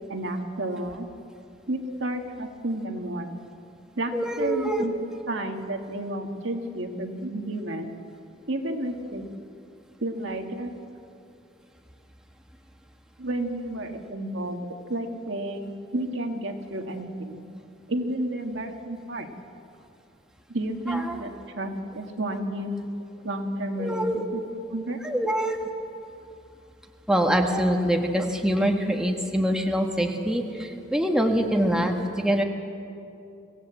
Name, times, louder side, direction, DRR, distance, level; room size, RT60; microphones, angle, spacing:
voice 1, 0.1-1.1 1.7-3.4 4.0-4.9 5.3-7.9 8.5-9.3 10.0-10.7 13.2-14.6 14.9-17.4 17.9-19.3 20.5-22.9 23.2-24.4 24.7-25.0, right 1 dB, 65° right, 4 dB, 1.8 m, -31 dB
voice 2, 4.1-4.9 20.9-21.2 23.8-24.2 25.0-25.6 27.1-32.4, equal, 5° right, 1 dB, 1.5 m, -24 dB
25.0 x 16.5 x 8.1 m, 2.6 s
head